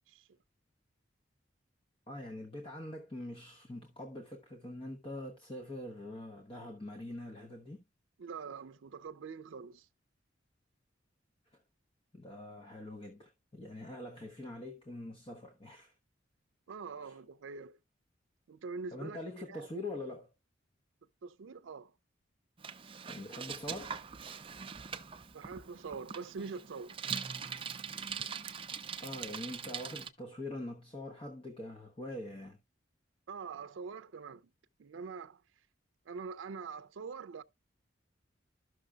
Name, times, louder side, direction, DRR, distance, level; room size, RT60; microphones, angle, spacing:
voice 1, 2.1-7.8 12.1-15.9 17.0-17.2 18.9-20.3 23.1-24.0 29.0-32.6, left 1 dB, 30° left, 1.0 m, -44 dB
voice 2, 8.2-9.9 16.7-17.8 18.5-19.2 19.5-20.0 21.2-21.9 25.3-27.0 33.3-34.4 34.8-35.4 36.1-37.4, right 5 dB, 90° right, 0.4 m, -44 dB
Bicycle, 22.6-30.1, right 6 dB, 30° right, 0.6 m, -42 dB
12.5 x 6.2 x 2.3 m
head